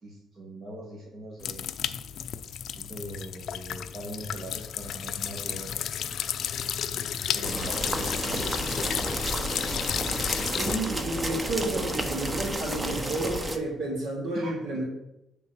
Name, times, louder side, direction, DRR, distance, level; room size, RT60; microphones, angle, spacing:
voice 1, 0.0-1.6 2.7-5.7 6.9-8.9 14.3-14.6, right 1 dB, 45° right, -2 dB, 1.4 m, -41 dB
sound 1, 1.4-10.8, left 9 dB, 70° left, 0.4 m, -32 dB
sound 2, 7.4-13.6, right 1 dB, 15° right, 0.9 m, -31 dB
voice 2, 10.4-14.8, right 2 dB, 80° right, -2 dB, 2.4 m, -31 dB
7.9 x 3.8 x 6.0 m, 0.86 s
cardioid pair, 90°, 0 cm